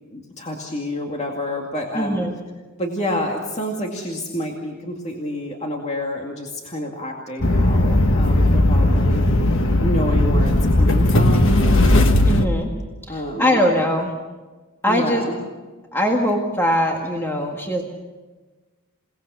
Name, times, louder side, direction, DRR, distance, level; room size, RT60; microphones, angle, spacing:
voice 1, 0.1-2.3 2.8-9.2 9.8-11.6 13.1-13.6 14.9-15.4, left 1 dB, 30° left, 0 dB, 2.2 m, -28 dB
voice 2, 1.9-2.3 12.2-12.7 13.1-14.1 14.8-15.2 15.9-17.8, equal, 10° left, 1 dB, 1.8 m, -21 dB
sound 1, 7.4-12.5, left 1 dB, 60° left, 1.4 m, -16 dB
28.0 x 19.0 x 6.9 m, 1.3 s
head